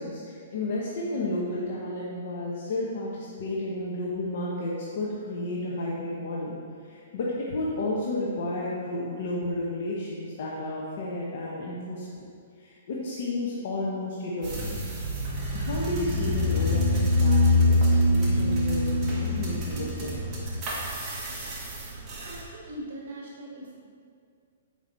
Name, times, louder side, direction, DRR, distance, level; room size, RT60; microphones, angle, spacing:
voice 1, 0.0-12.1 12.6-14.8 15.5-20.1, left 2 dB, 55° left, -5 dB, 0.9 m, -32 dB
sound 1, 14.4-22.4, left 1 dB, 20° right, 1.3 m, -25 dB
voice 2, 22.2-23.7, right 1 dB, 55° right, -3 dB, 1.6 m, -40 dB
7.6 x 4.9 x 3.9 m, 2.2 s
hypercardioid pair, 160°, 0 cm